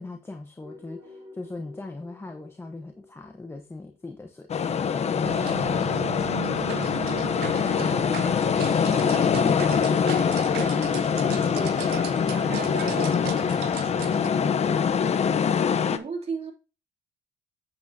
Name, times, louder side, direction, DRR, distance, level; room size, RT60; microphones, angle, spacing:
voice 1, 0.0-7.4 10.5-15.2, left 2 dB, 15° left, 4 dB, 1.1 m, -40 dB
sound 1, 0.6-4.2 4.8-15.4, left 2 dB, 20° right, 5.4 m, -48 dB
sound 2, 4.5-16.0, left 7 dB, 40° left, 0.9 m, -24 dB
sound 3, 5.2-14.3, right 16 dB, 80° right, 0.5 m, -37 dB
voice 2, 8.8-10.7 15.8-16.5, right 4 dB, 40° right, 2 dB, 3.1 m, -37 dB
8.5 x 8.5 x 2.8 m, 0.31 s
cardioid pair, 110°, 17 cm